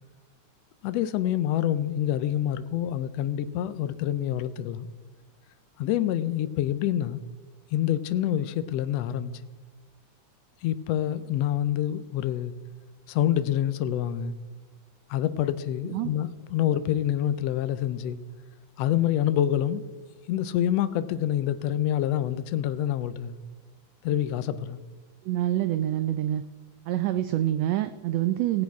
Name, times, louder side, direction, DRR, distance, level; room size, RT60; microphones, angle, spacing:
voice 1, 0.8-4.9 5.8-7.2 7.7-9.5 10.6-12.5 13.1-14.3 15.1-18.2 18.8-19.8 20.3-23.4 24.0-24.8, left 11 dB, 90° left, 1.4 m, -27 dB
voice 2, 25.2-26.4 26.9-28.6, right 13 dB, 90° right, 1.5 m, -26 dB
17.5 x 8.5 x 4.6 m
omnidirectional pair, 3.6 m